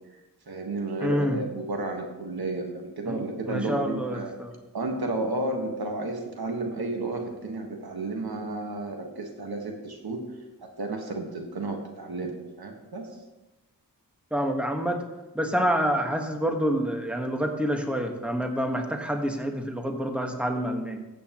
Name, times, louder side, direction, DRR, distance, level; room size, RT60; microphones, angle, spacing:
voice 1, 0.5-4.3 4.7-10.2 10.6-13.1, right 2 dB, 80° right, 3 dB, 1.5 m, -32 dB
voice 2, 1.0-1.4 3.0-3.2 3.4-4.5 14.3-15.0 15.3-21.0, equal, 5° right, 3 dB, 1.4 m, -27 dB
14.5 x 8.2 x 3.0 m, 1.0 s
wide cardioid pair, 60°, 37 cm